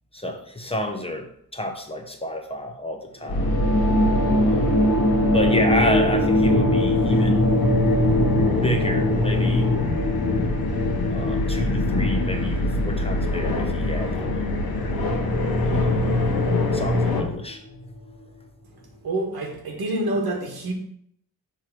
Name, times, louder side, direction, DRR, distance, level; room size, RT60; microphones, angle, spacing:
voice 1, 0.1-1.3 1.5-3.5 4.4-4.9 5.3-7.5 8.4-9.7 11.1-14.6 15.6-16.0 16.7-17.6, left 1 dB, 15° left, 3 dB, 0.7 m, -29 dB
sound 1, 3.3-17.2, left 2 dB, 80° left, 1.1 m, -26 dB
sound 2, 3.3-18.1, left 1 dB, 45° left, 1.1 m, -24 dB
sound 3, 7.1-11.2 14.9-17.3, left 2 dB, 5° right, 1.4 m, -25 dB
voice 2, 19.0-20.7, right 1 dB, 90° right, 1 dB, 1.6 m, -27 dB
6.6 x 3.1 x 5.9 m, 0.69 s
wide cardioid pair, 155°, 36 cm